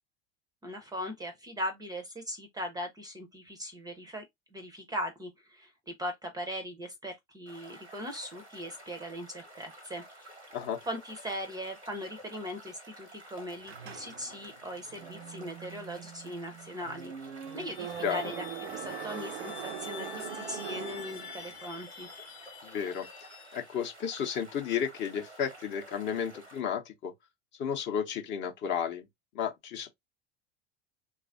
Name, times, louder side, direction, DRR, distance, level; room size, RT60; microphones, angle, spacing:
voice 1, 0.6-4.2 4.5-10.3 10.9-22.1, equal, 10° right, 0.5 m, -39 dB
sound 1, 7.5-26.6, right 1 dB, 90° right, 0.9 m, -52 dB
sound 2, 13.6-21.7, right 9 dB, 65° right, 0.5 m, -42 dB
sound 3, 17.4-24.0, left 7 dB, 75° left, 0.7 m, -47 dB
voice 2, 22.6-23.1 23.5-27.1 27.6-29.0 29.3-29.9, left 8 dB, 35° left, 0.7 m, -32 dB
3.1 x 2.4 x 2.4 m
figure-of-eight pair, 75°, 33 cm